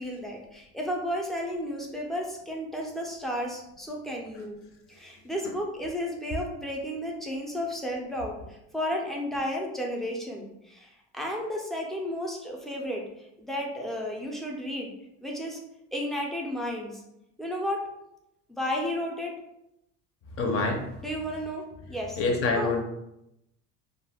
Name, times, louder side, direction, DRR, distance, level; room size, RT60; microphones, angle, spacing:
voice 1, 0.0-4.6 4.9-13.0 13.4-14.9 15.2-15.6 15.9-17.0 17.4-17.9 18.5-19.3 21.0-22.2 22.5-22.7, equal, ahead, -1 dB, 0.4 m, -33 dB
voice 2, 20.4-20.9 22.2-22.8, left 3 dB, 45° left, 3 dB, 0.6 m, -26 dB
2.3 x 2.1 x 3.3 m, 0.83 s
supercardioid pair, 120°, 31 cm